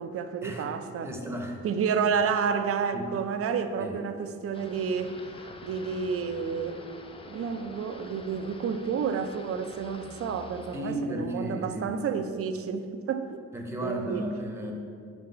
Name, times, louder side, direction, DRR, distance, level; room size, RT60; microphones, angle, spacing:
voice 1, 0.0-1.1 1.6-5.1 5.6-6.8 7.3-13.4 13.8-14.2, right 6 dB, 50° right, 8 dB, 0.5 m, -30 dB
voice 2, 1.0-1.6 2.9-3.1 3.8-4.0 10.7-12.0 13.5-14.7, right 1 dB, 10° right, 1 dB, 0.8 m, -34 dB
sound 1, 4.5-10.8, left 3 dB, 20° left, 0.4 m, -47 dB
4.6 x 4.1 x 5.5 m, 2.2 s
cardioid pair, 90°, 30 cm